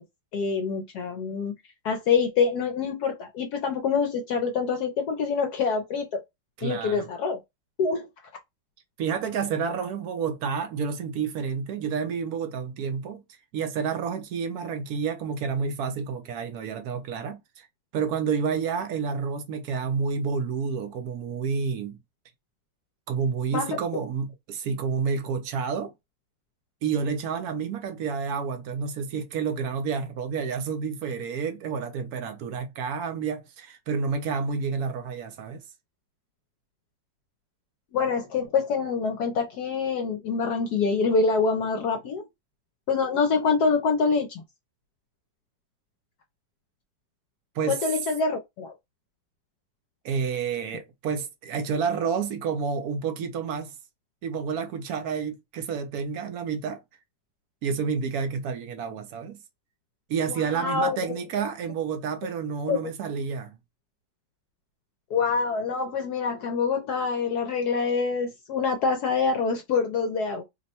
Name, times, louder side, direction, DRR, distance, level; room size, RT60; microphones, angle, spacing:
voice 1, 0.3-1.5 1.8-6.2 6.6-7.4 7.8-8.1 23.5-23.8 37.9-42.2 42.9-44.4 47.7-48.7 60.3-61.0 62.7-62.8 65.1-70.4, left 5 dB, 70° left, 1.0 m, -25 dB
voice 2, 6.6-7.1 9.0-13.2 13.5-17.7 17.9-22.0 23.1-25.9 26.8-35.6 47.5-47.8 50.0-53.7 54.2-56.8 57.6-59.4 60.1-63.6, right 6 dB, 70° right, 0.9 m, -29 dB
3.0 x 2.1 x 4.1 m
omnidirectional pair, 2.0 m